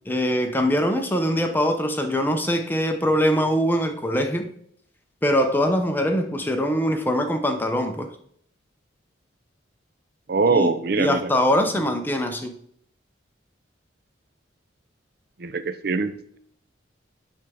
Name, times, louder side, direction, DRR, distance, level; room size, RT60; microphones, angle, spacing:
voice 1, 0.1-4.5 5.2-8.1 10.5-10.7 11.0-12.5, equal, 10° left, 0.7 m, -22 dB
voice 2, 10.3-11.3 15.4-16.4, right 4 dB, 50° right, 0.5 m, -23 dB
8.7 x 3.6 x 6.9 m
head